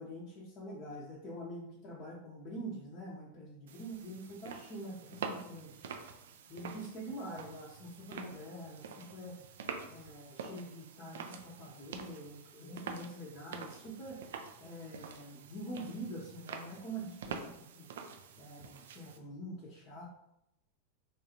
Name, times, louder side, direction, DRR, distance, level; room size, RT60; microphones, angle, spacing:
voice 1, 0.0-5.8 6.5-9.5 9.9-14.2 14.6-17.9 18.4-20.1, right 1 dB, 35° left, -4 dB, 0.7 m, -45 dB
sound 1, 3.7-19.2, right 6 dB, 60° right, 0.3 m, -47 dB
3.4 x 2.3 x 2.8 m, 0.82 s
figure-of-eight pair, 90°, 0 cm